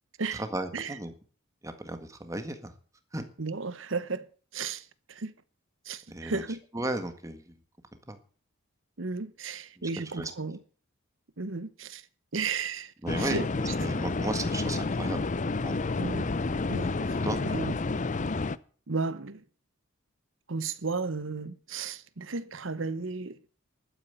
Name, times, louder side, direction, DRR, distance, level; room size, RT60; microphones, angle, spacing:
voice 1, 0.3-1.1 1.6-2.7 3.1-3.3 6.1-6.4 6.7-7.5 8.1-8.2 9.8-9.9 10.2-10.3 13.0-13.4 13.8-15.2 15.6-15.8 17.2-17.4, right 1 dB, 15° right, 1.7 m, -34 dB
voice 2, 3.4-4.3 4.5-5.3 5.8-6.6 9.0-10.6 11.4-12.1 12.3-13.8 16.0-16.3 16.7-16.9 17.4-17.8 18.9-19.4 20.5-23.5, right 4 dB, 65° right, 1.0 m, -34 dB
sound 1, 13.1-18.6, left 3 dB, 35° left, 0.6 m, -30 dB
12.0 x 9.3 x 7.9 m
head